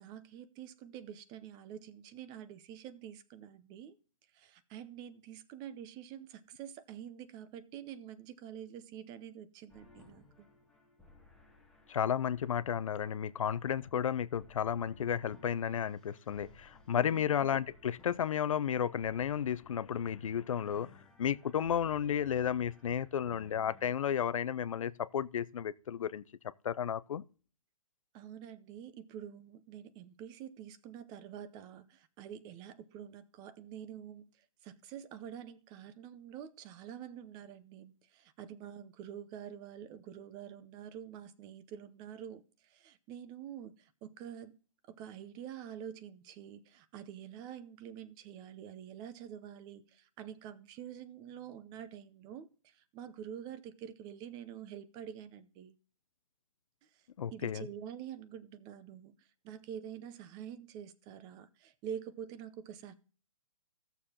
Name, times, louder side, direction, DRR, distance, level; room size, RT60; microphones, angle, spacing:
voice 1, 0.0-3.9 4.3-10.5 16.9-17.2 28.1-34.3 34.6-44.6 44.9-55.7 57.3-59.1 59.4-62.9, right 9 dB, 25° right, 0.6 m, -47 dB
sound 1, 9.7-23.9, left 2 dB, 5° left, 1.2 m, -61 dB
voice 2, 11.9-26.2 26.6-27.2 57.2-57.7, left 8 dB, 70° left, 0.5 m, -33 dB
15.5 x 6.9 x 2.8 m
hypercardioid pair, 135°, 18 cm